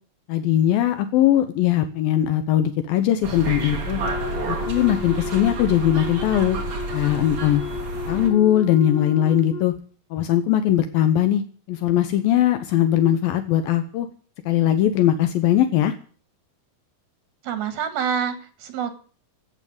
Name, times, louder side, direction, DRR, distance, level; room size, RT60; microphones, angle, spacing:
voice 1, 0.3-4.0 4.5-6.6 6.9-7.6 8.1-9.7 10.1-11.4 11.7-14.1 14.5-15.9, left 11 dB, 80° left, 9 dB, 2.7 m, -20 dB
sound 1, 3.2-8.3, right 3 dB, 40° right, 3.3 m, -30 dB
Wind instrument woodwind instrument, 4.0-9.8, left 6 dB, 50° left, 2.9 m, -33 dB
voice 2, 17.4-18.9, right 7 dB, 85° right, 10 dB, 3.9 m, -27 dB
14.5 x 9.0 x 9.4 m, 0.43 s
omnidirectional pair, 4.2 m